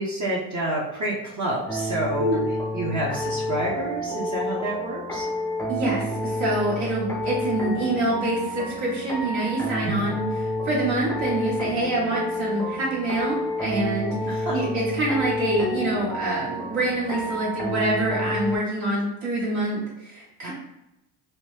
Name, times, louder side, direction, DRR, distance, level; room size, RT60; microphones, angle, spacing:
voice 1, 0.0-2.4 2.7-5.3 9.8-10.2 14.3-14.5 20.4-20.5, right 1 dB, 40° right, -4 dB, 0.8 m, -28 dB
sound 1, 1.7-18.6, left 1 dB, 5° left, 0.4 m, -30 dB
voice 2, 5.7-20.5, right 2 dB, 70° right, -7 dB, 1.5 m, -26 dB
2.8 x 2.2 x 3.2 m, 0.91 s
supercardioid pair, 80°, 47 cm